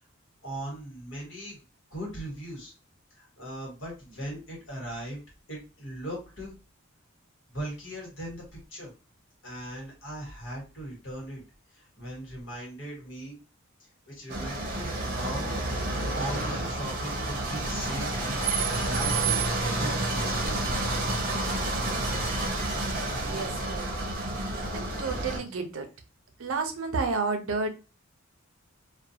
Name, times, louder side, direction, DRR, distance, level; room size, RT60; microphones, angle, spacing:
voice 1, 0.4-1.6 1.9-2.7 3.1-5.2 5.5-6.5 7.5-8.4 8.7-8.9 9.4-11.4 11.7-13.4 14.1-15.5 16.1-20.8, right 1 dB, 65° left, -2 dB, 1.4 m, -39 dB
sound 1, 14.3-25.4, right 2 dB, 45° right, 0.6 m, -29 dB
voice 2, 23.2-23.9 24.7-25.9 26.4-27.7, right 4 dB, 85° right, 6 dB, 0.6 m, -31 dB
2.3 x 2.3 x 2.7 m, 0.32 s
head